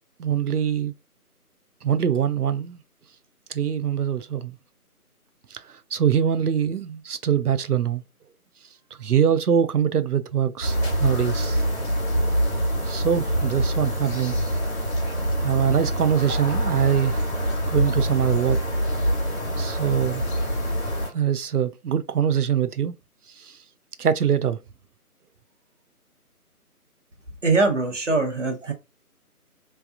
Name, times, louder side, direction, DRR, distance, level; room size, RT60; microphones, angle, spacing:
voice 1, 0.2-0.9 1.8-2.8 3.5-4.6 5.5-5.6 5.9-8.0 9.0-11.6 12.8-14.3 15.4-17.2 17.7-18.6 19.6-20.2 21.1-22.9 23.4-23.6 24.0-24.6, right 8 dB, 75° right, 0.6 m, -23 dB
sound 1, 10.6-21.1, equal, 45° left, 2.0 m, -25 dB
voice 2, 27.4-28.7, right 3 dB, 50° right, 1.1 m, -22 dB
3.3 x 3.3 x 2.4 m
figure-of-eight pair, 160°, 46 cm